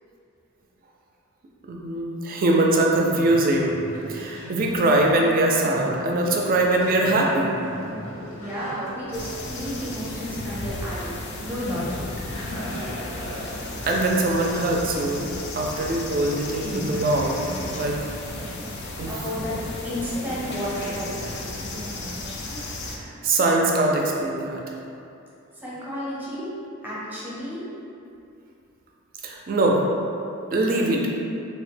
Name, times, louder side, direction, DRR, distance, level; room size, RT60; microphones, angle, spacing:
voice 1, 1.7-3.8 4.1-7.5 13.9-17.4 17.7-18.0 19.0-19.2 22.9-24.7 29.2-29.8 30.5-31.1, right 2 dB, 45° right, -1 dB, 0.4 m, -22 dB
Conversation, 3.1-22.8, equal, 80° left, 0.8 m, -38 dB
voice 2, 8.3-12.0 19.1-21.5 25.6-26.5 26.8-27.6, equal, 10° right, -8 dB, 0.7 m, -32 dB
sound 1, 9.1-23.0, left 2 dB, 55° left, 0.4 m, -35 dB
3.1 x 2.1 x 3.2 m, 2.6 s
head